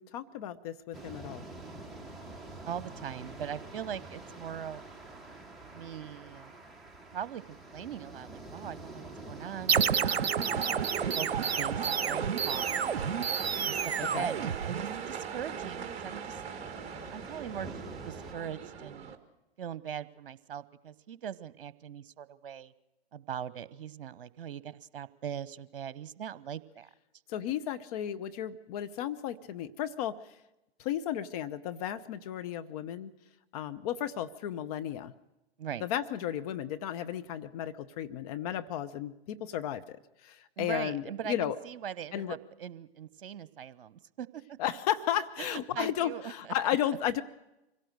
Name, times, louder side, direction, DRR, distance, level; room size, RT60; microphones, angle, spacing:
voice 1, 0.0-1.5 14.1-14.3 27.3-30.2 30.8-33.1 33.5-35.1 35.8-40.0 40.2-41.6 42.1-42.4 44.6-47.2, left 10 dB, 40° left, 10 dB, 0.9 m, -34 dB
sound 1, 0.9-18.3, right 2 dB, ahead, 1.8 m, -47 dB
voice 2, 2.7-4.8 5.7-6.5 7.1-10.2 11.0-13.3 13.6-16.4 17.1-19.1 19.6-22.7 23.1-26.9 35.6-35.8 40.6-44.6 45.4-46.6, right 9 dB, 60° right, 17 dB, 1.0 m, -41 dB
sound 2, 9.7-19.1, right 7 dB, 20° right, 1.8 m, -38 dB
sound 3, 9.7-15.1, right 7 dB, 85° right, 0.7 m, -30 dB
25.0 x 17.5 x 6.6 m, 0.94 s
figure-of-eight pair, 120°, 31 cm